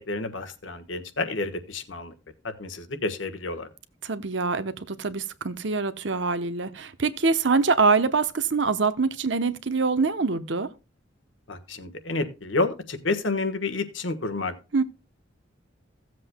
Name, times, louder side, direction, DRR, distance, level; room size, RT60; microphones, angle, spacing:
voice 1, 0.1-2.1 2.6-3.7 11.5-14.5, left 3 dB, 75° left, 1.4 m, -29 dB
voice 2, 4.0-10.7 14.7-14.8, right 4 dB, 65° right, 0.9 m, -24 dB
16.5 x 7.6 x 2.2 m
head